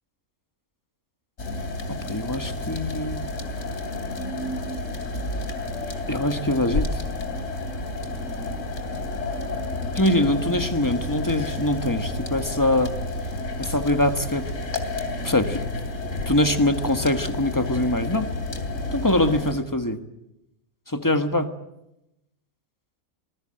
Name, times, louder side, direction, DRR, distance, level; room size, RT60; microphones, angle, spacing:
sound 1, 1.4-19.5, left 2 dB, 60° left, 3.3 m, -30 dB
voice 1, 1.9-3.3 6.1-6.9 9.9-12.9 13.6-14.5 15.2-15.6 16.2-18.3 18.9-20.0 20.9-21.5, left 1 dB, 15° left, 8 dB, 1.3 m, -23 dB
26.0 x 20.0 x 7.7 m, 0.88 s
omnidirectional pair, 1.5 m